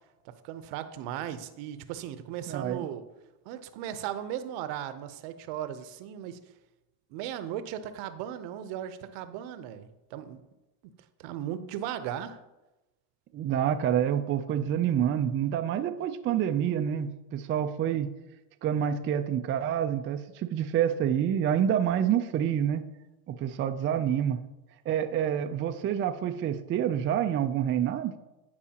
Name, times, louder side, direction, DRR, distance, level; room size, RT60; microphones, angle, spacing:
voice 1, 0.2-3.0 3.4-6.4 7.1-10.4 10.8-10.9 11.2-12.4, right 10 dB, 65° right, 11 dB, 0.8 m, -37 dB
voice 2, 2.5-2.9 13.3-18.1 18.6-22.8 23.3-24.4 24.9-28.1, right 9 dB, 30° right, 6 dB, 0.4 m, -27 dB
13.5 x 4.8 x 2.9 m, 1.0 s
supercardioid pair, 105°, 46 cm